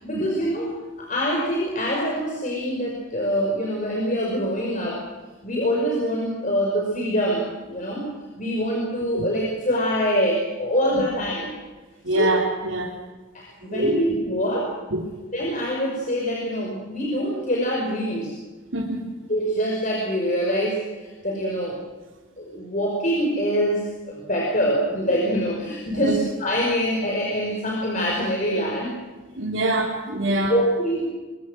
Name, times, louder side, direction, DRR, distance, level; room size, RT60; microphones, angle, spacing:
voice 1, 0.0-5.0 5.4-8.1 8.4-11.5 12.1-12.4 13.3-14.7 15.3-18.3 19.3-21.8 22.4-28.9 30.2-31.1, equal, 40° left, -1 dB, 5.5 m, -25 dB
voice 2, 12.0-12.9 13.7-14.0 14.4-14.5 14.9-15.1 18.7-19.0 26.0-26.2 29.4-30.5, right 1 dB, 85° right, -3 dB, 3.9 m, -24 dB
25.0 x 23.5 x 6.4 m, 1.3 s
head